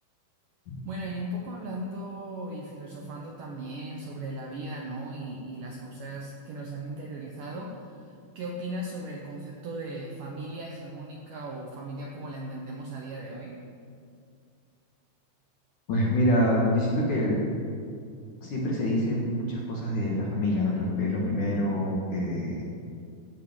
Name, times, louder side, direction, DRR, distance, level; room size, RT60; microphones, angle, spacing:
voice 1, 0.8-13.6, right 1 dB, 75° right, -1 dB, 2.0 m, -37 dB
voice 2, 15.9-17.4 18.4-22.6, left 1 dB, 60° left, -3 dB, 2.4 m, -26 dB
14.0 x 4.8 x 8.7 m, 2.3 s
omnidirectional pair, 5.1 m